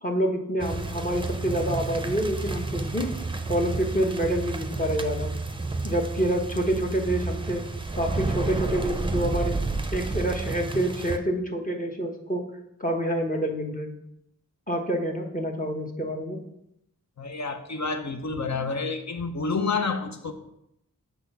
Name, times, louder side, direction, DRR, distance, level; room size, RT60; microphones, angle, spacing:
voice 1, 0.0-3.1 3.5-5.3 5.8-7.6 8.0-9.5 9.9-12.4 12.8-13.9 14.7-16.4, right 1 dB, 25° left, 1.1 m, -27 dB
sound 1, 0.6-11.2, right 3 dB, 15° right, 0.6 m, -31 dB
voice 2, 17.2-20.3, left 4 dB, 55° left, 0.9 m, -29 dB
7.9 x 3.5 x 5.5 m
wide cardioid pair, 55°, 34 cm